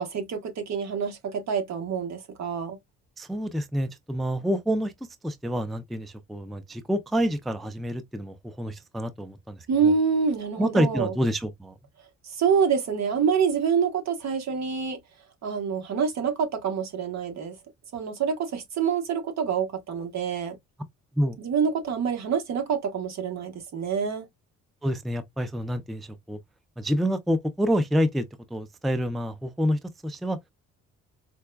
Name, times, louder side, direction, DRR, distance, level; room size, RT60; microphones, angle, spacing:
voice 1, 0.0-2.8 9.7-11.1 12.2-15.0 15.4-17.6 17.9-20.6 21.4-24.3, right 6 dB, 65° right, 1.1 m, -26 dB
voice 2, 3.2-4.9 5.2-9.7 10.6-11.7 21.2-21.4 24.8-26.4 26.8-28.3 28.5-30.4, equal, ahead, 0.4 m, -27 dB
4.6 x 2.2 x 2.2 m
cardioid pair, 90°, 30 cm